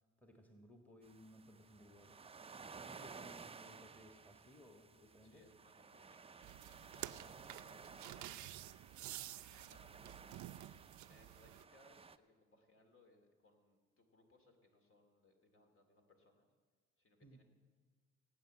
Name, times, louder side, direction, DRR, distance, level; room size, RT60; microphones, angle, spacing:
voice 1, 0.2-2.2 2.8-5.4 17.2-17.4, left 1 dB, 5° left, 3 dB, 1.7 m, -61 dB
sound 1, 1.0-12.2, right 5 dB, 20° right, 0.5 m, -56 dB
voice 2, 5.2-8.6 8.9-10.1 11.1-16.5 17.0-17.4, left 1 dB, 45° left, 4 dB, 2.6 m, -69 dB
sound 2, 6.4-11.6, right 15 dB, 75° right, 0.5 m, -51 dB
17.5 x 8.9 x 7.6 m, 1.6 s
cardioid pair, 90°, 30 cm